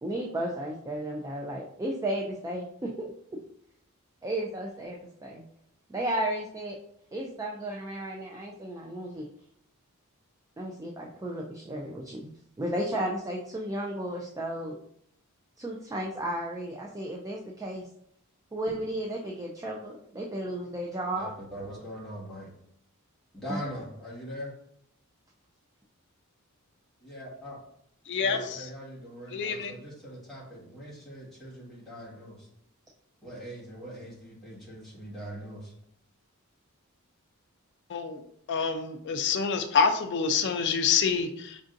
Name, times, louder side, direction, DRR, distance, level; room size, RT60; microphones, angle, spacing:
voice 1, 0.0-3.4 4.2-5.0 5.2-5.4 5.9-6.8 7.1-9.3 10.6-12.3 12.6-14.8 15.6-17.9 18.5-21.3 23.5-23.6 28.3-28.5, right 1 dB, 15° right, -2 dB, 0.3 m, -34 dB
voice 2, 21.0-22.5 23.3-24.5 27.0-27.6 28.2-32.5 33.2-35.7, equal, ahead, -7 dB, 1.5 m, -42 dB
voice 3, 28.1-28.7 29.3-29.7 37.9-38.2 38.5-41.6, left 5 dB, 55° left, 8 dB, 0.4 m, -27 dB
5.3 x 2.5 x 2.5 m, 0.71 s
head